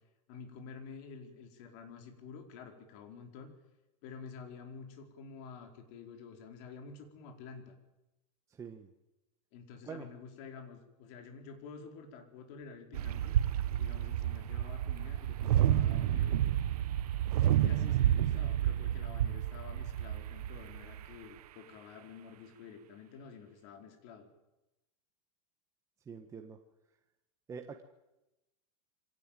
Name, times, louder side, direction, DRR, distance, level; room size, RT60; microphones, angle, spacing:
voice 1, 0.3-3.5 4.0-7.8 9.5-13.3 13.7-16.4 17.6-24.3, left 5 dB, 45° left, 5 dB, 4.6 m, -49 dB
voice 2, 8.5-8.9 9.8-10.1 26.1-26.6 27.5-27.8, right 6 dB, 15° right, 5 dB, 1.4 m, -45 dB
sound 1, 12.9-21.1, right 11 dB, 70° right, 1.4 m, -30 dB
25.0 x 17.5 x 9.2 m, 0.97 s
supercardioid pair, 155°, 20 cm